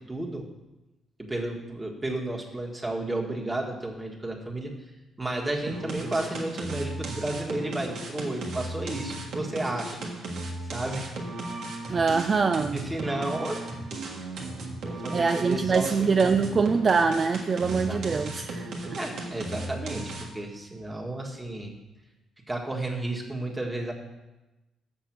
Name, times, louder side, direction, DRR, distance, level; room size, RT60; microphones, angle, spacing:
voice 1, 0.1-0.5 1.2-4.7 5.2-10.1 10.7-11.1 11.9-12.0 12.7-13.7 14.8-16.3 17.6-18.4 19.0-21.7 22.5-23.9, right 1 dB, 15° right, 0 dB, 1.7 m, -33 dB
sound 1, 5.7-20.5, right 2 dB, 75° right, 1.5 m, -36 dB
voice 2, 11.9-12.8 15.1-18.7, right 5 dB, 40° right, 8 dB, 0.4 m, -24 dB
7.0 x 6.7 x 6.1 m, 1.0 s
cardioid pair, 90°, 0 cm